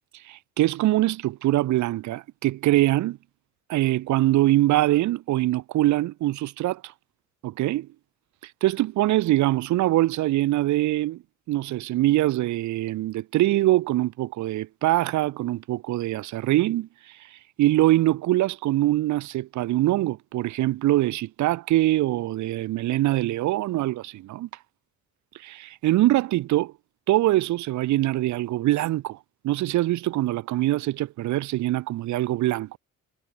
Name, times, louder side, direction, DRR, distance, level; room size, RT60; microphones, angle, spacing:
voice 1, 0.2-3.2 3.7-6.9 7.4-7.9 8.4-11.2 11.5-17.2 17.6-24.5 25.4-26.7 27.1-29.2 29.4-32.8, right 16 dB, 70° right, 0.6 m, -23 dB
cardioid pair, 90°, 30 cm